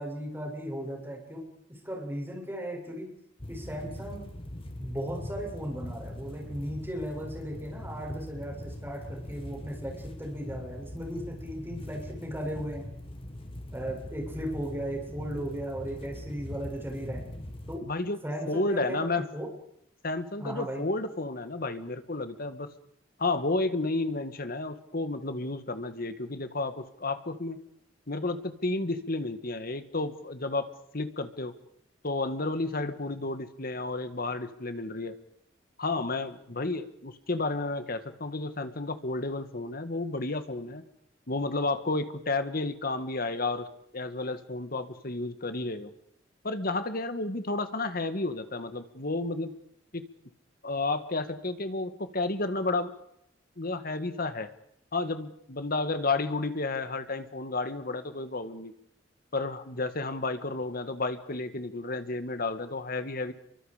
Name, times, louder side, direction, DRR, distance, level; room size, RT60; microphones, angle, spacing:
voice 1, 0.0-1.5 1.8-3.1 3.5-4.3 4.8-12.8 13.7-17.2 17.7-17.8 18.2-19.5 20.4-20.8, equal, 15° right, -1 dB, 7.8 m, -36 dB
sound 1, 3.4-17.8, left 1 dB, 30° left, 2.0 m, -41 dB
voice 2, 17.8-18.2 18.5-19.3 20.0-22.7 23.2-27.6 28.1-30.7 30.9-31.5 32.0-35.2 35.8-40.8 41.3-43.7 43.9-45.9 46.4-49.5 49.9-50.0 50.6-52.9 53.6-54.5 54.9-58.7 59.3-63.3, left 2 dB, 55° left, 10 dB, 1.8 m, -31 dB
29.5 x 24.0 x 5.1 m, 0.74 s
head